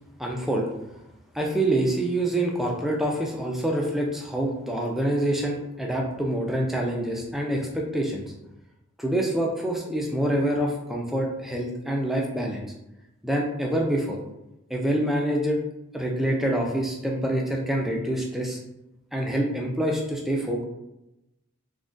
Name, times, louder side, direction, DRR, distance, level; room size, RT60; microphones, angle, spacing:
voice 1, 0.2-0.7 1.3-8.2 9.0-12.7 13.2-14.2 14.7-15.6 15.9-18.6 19.1-20.6, right 1 dB, ahead, -1 dB, 0.4 m, -26 dB
3.5 x 2.2 x 2.5 m, 0.89 s
head